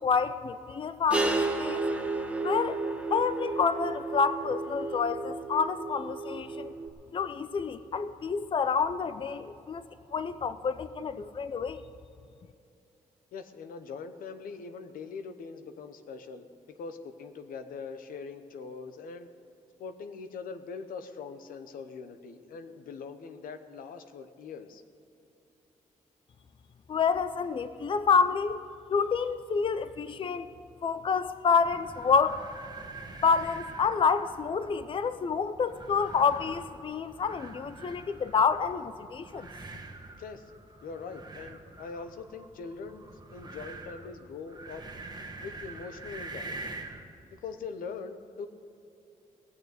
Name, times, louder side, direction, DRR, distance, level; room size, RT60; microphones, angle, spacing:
voice 1, 0.0-1.8 2.4-2.8 3.1-6.7 7.1-9.8 10.1-11.8 26.9-28.6 28.9-30.5 30.8-32.4 33.2-39.5, left 5 dB, 40° left, 13 dB, 0.5 m, -28 dB
sound 1, 1.1-6.9, right 3 dB, 10° right, 1.4 m, -32 dB
voice 2, 13.3-16.5 16.8-19.3 19.8-24.8 40.1-40.4 40.8-43.0 43.3-44.8 45.4-46.8 47.3-48.5, left 5 dB, 85° left, 9 dB, 0.9 m, -42 dB
sound 2, 31.6-47.1, right 3 dB, 30° right, 1.5 m, -45 dB
18.5 x 6.7 x 8.1 m, 2.7 s
cardioid pair, 90°, 14 cm